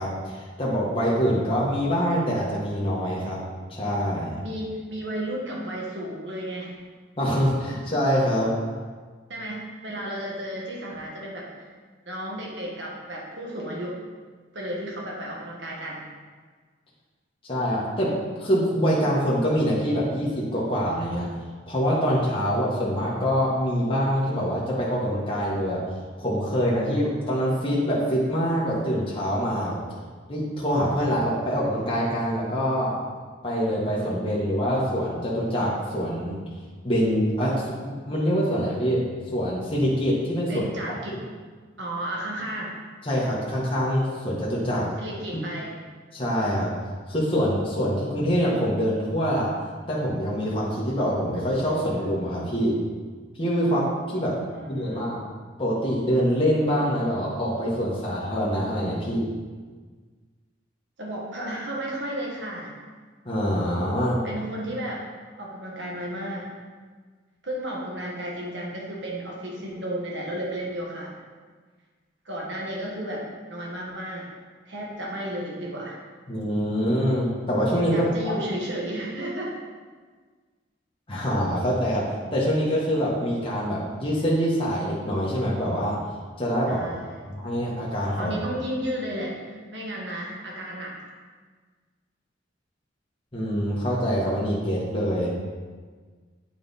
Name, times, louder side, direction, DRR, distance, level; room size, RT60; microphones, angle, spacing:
voice 1, 0.0-3.4 3.7-4.4 7.2-8.5 17.5-18.1 18.4-21.3 21.7-25.8 26.2-29.8 30.3-32.9 33.4-36.4 36.8-39.0 39.3-40.9 43.0-44.9 46.1-46.7 47.1-49.5 49.9-52.8 53.3-54.4 54.7-55.2 55.6-59.3 63.2-64.2 76.3-78.3 81.1-86.0 86.4-86.9 87.3-88.4 93.3-95.3, equal, 30° left, -6 dB, 1.4 m, -25 dB
voice 2, 4.4-6.7 9.3-11.7 12.0-14.0 14.5-16.0 40.5-41.2 41.8-42.8 44.8-45.7 54.5-55.1 61.0-62.7 64.2-65.0 65.4-66.5 67.4-71.1 72.2-74.3 74.6-76.0 77.9-79.5 86.7-87.3 88.2-91.0, right 1 dB, 70° right, -2 dB, 1.6 m, -33 dB
9.1 x 4.9 x 4.1 m, 1.5 s
head